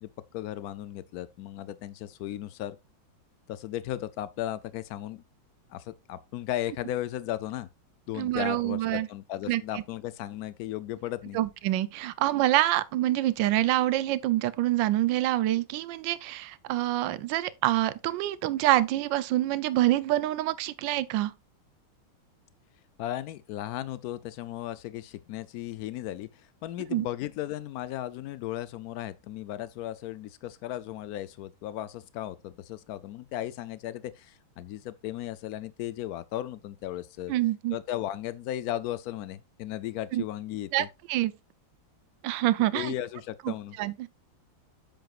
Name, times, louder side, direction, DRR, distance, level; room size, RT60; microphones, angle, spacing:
voice 1, 0.0-2.8 3.5-5.2 5.7-7.7 8.1-11.4 23.0-37.3 37.7-40.9 42.7-43.8, left 13 dB, 85° left, 0.8 m, -36 dB
voice 2, 8.2-9.1 9.5-9.8 11.3-21.3 26.9-27.1 37.3-37.8 40.1-40.2 40.7-41.3 42.2-42.9 43.5-44.1, right 15 dB, 75° right, 1.3 m, -26 dB
8.9 x 7.9 x 2.4 m
omnidirectional pair, 2.2 m